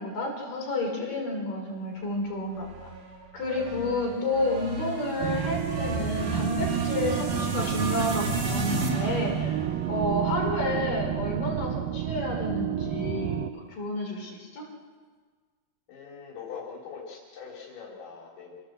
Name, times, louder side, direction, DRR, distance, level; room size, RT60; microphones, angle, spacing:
voice 1, 0.0-2.9 3.3-9.6 9.9-14.6, left 2 dB, 60° left, -1 dB, 6.5 m, -30 dB
sound 1, 2.6-10.9, right 2 dB, 55° right, 4.2 m, -34 dB
sound 2, 5.2-13.5, right 12 dB, 75° right, 2.4 m, -30 dB
voice 2, 15.9-18.6, left 6 dB, 85° left, -3 dB, 5.2 m, -42 dB
27.5 x 17.5 x 7.9 m, 1.5 s
omnidirectional pair, 4.4 m